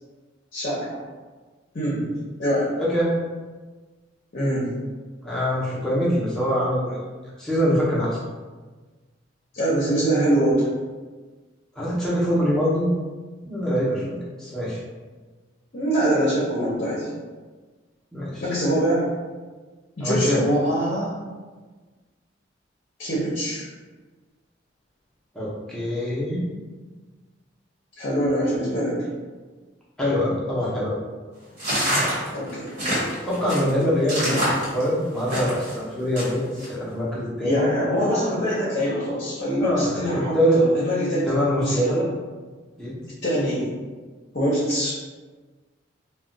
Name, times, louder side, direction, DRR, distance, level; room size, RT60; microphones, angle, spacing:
voice 1, 0.5-1.0 1.7-2.0 2.4-2.7 4.3-4.7 9.5-10.7 15.7-17.1 18.4-19.1 20.0-21.2 23.0-23.7 28.0-29.0 32.3-32.7 34.1-34.4 37.4-41.3 41.6-42.1 43.2-43.7 44.3-44.9, equal, 50° left, -7 dB, 0.7 m, -24 dB
voice 2, 5.2-7.0 7.4-8.2 11.7-12.9 13.4-14.8 18.1-18.4 20.0-20.4 25.3-26.5 30.0-31.0 33.2-37.6 39.6-40.6 41.2-42.0 42.8-42.9, equal, 5° left, -8 dB, 0.7 m, -24 dB
sound 1, 31.6-35.7 36.2-36.7, equal, 40° right, 1.2 m, -26 dB
2.4 x 2.2 x 3.8 m, 1.4 s
head